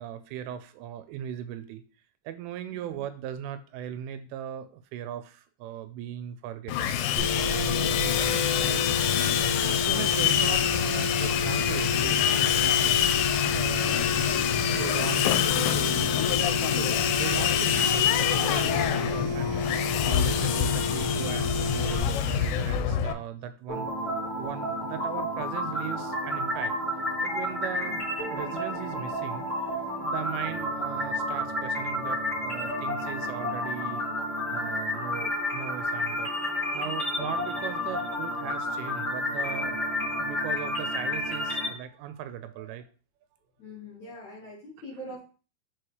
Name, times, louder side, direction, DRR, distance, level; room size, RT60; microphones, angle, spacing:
voice 1, 0.0-1.8 2.2-8.8 9.6-12.2 12.4-12.9 13.5-14.3 14.7-16.1 16.4-23.9 24.4-28.0 28.3-29.7 30.0-34.1 34.5-42.9 44.9-45.2, right 10 dB, 90° right, 10 dB, 3.1 m, -38 dB
Sawing, 6.7-23.1, left 10 dB, 85° left, 3.1 m, -26 dB
sound 1, 7.2-22.0, left 2 dB, 60° right, 1.9 m, -31 dB
sound 2, 23.7-41.7, left 1 dB, 50° left, 0.8 m, -31 dB
voice 2, 27.7-28.0 36.7-37.0 43.6-45.2, left 1 dB, 70° left, -4 dB, 1.8 m, -44 dB
6.8 x 4.8 x 3.1 m, 0.36 s
omnidirectional pair, 5.6 m